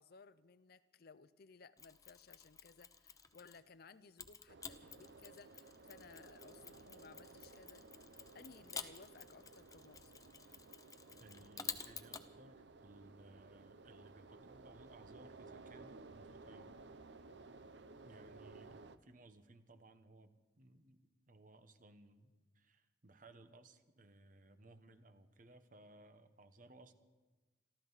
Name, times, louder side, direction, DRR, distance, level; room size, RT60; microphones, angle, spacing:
voice 1, 0.0-7.9 8.3-10.1, left 4 dB, 55° left, 15 dB, 0.6 m, -60 dB
Mechanisms, 1.8-3.7 4.2-12.3, left 6 dB, 20° left, 0.8 m, -51 dB
sound 1, 4.5-19.0, right 3 dB, 70° right, 0.8 m, -57 dB
voice 2, 11.2-16.7 18.0-26.9, right 2 dB, 45° right, 10 dB, 1.1 m, -61 dB
27.0 x 13.0 x 4.1 m, 1.2 s
head